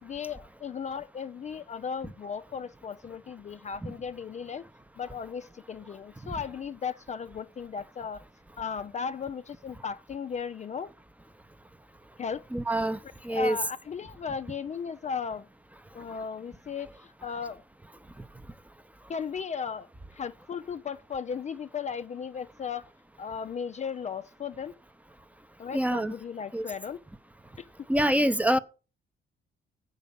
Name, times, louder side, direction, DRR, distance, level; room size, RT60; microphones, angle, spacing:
voice 1, 0.0-4.6 5.0-8.2 8.6-10.9 12.2-12.5 13.2-15.5 15.9-17.6 19.1-22.9 23.2-24.8 25.6-27.0 27.6-27.7, left 6 dB, 35° left, 0.4 m, -36 dB
voice 2, 12.5-13.0 13.2-13.6 25.7-26.1 26.5-26.6 27.9-28.6, right 1 dB, 5° right, 0.7 m, -25 dB
8.1 x 5.4 x 7.1 m
cardioid pair, 90°, 20 cm